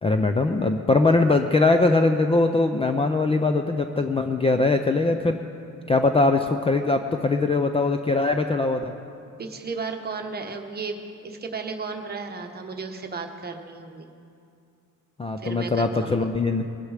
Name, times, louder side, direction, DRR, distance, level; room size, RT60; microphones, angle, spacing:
voice 1, 0.0-5.4 5.9-8.9 15.2-16.6, left 3 dB, 15° left, 6 dB, 0.4 m, -21 dB
voice 2, 9.4-14.1 15.4-16.1, right 4 dB, 30° right, 3 dB, 1.1 m, -34 dB
21.5 x 9.8 x 4.9 m, 2.5 s
cardioid pair, 145°, 34 cm